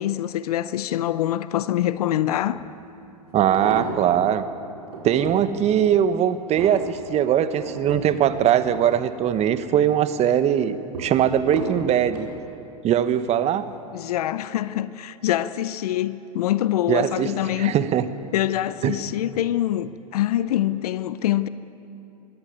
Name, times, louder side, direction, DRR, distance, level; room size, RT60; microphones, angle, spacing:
voice 1, 0.0-2.6 13.9-17.7 18.3-21.5, left 13 dB, 70° left, 0.7 m, -24 dB
sound 1, 2.5-2.6 3.3-4.3 4.8-5.5 6.0-9.4 9.8-10.3 10.9-12.3 13.1-13.4 13.7-13.8, right 3 dB, 75° right, 4.7 m, -35 dB
voice 2, 3.3-4.5 5.0-12.3 12.8-13.7 16.9-17.3 17.6-18.0 18.8-19.0, right 10 dB, 35° right, 1.2 m, -21 dB
22.0 x 16.0 x 9.5 m
hypercardioid pair, 110°, 20 cm